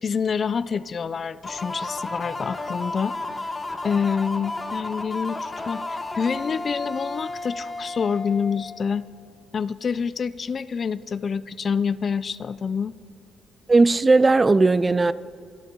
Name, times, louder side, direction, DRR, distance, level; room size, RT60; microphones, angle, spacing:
voice 1, 0.0-3.2 3.8-9.0 9.5-12.9, left 6 dB, 45° left, 0.4 m, -27 dB
sound 1, 1.4-9.0, left 2 dB, 20° left, 1.2 m, -33 dB
voice 2, 13.7-15.1, right 3 dB, 25° right, 0.4 m, -17 dB
26.0 x 10.5 x 3.8 m
cardioid pair, 90°, 0 cm